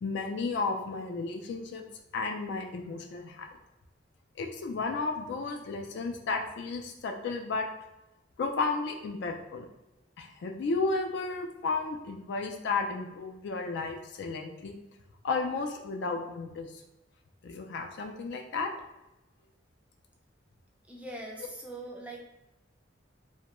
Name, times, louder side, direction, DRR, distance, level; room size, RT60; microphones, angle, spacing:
voice 1, 0.0-1.8 2.1-3.5 4.4-7.7 8.4-9.7 10.2-14.8 15.2-16.7 17.4-18.7, left 3 dB, 65° left, 3 dB, 0.4 m, -33 dB
voice 2, 20.9-22.2, right 1 dB, 5° right, -1 dB, 0.3 m, -41 dB
2.2 x 2.1 x 2.9 m, 0.94 s
head